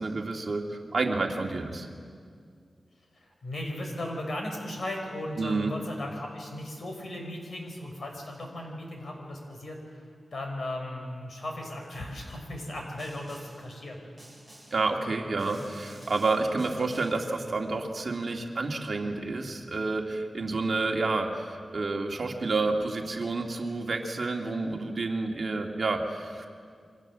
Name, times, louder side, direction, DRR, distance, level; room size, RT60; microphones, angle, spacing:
voice 1, 0.0-1.9 5.4-5.7 14.7-26.5, right 3 dB, 45° right, 1 dB, 2.4 m, -29 dB
voice 2, 3.2-10.0 10.3-14.0, left 1 dB, 55° left, 2 dB, 5.7 m, -36 dB
Snare drum, 13.0-13.7 14.2-14.9 15.4-17.3, right 1 dB, 5° left, 7.6 m, -52 dB
28.5 x 24.5 x 7.5 m, 2.2 s
wide cardioid pair, 145°, 0 cm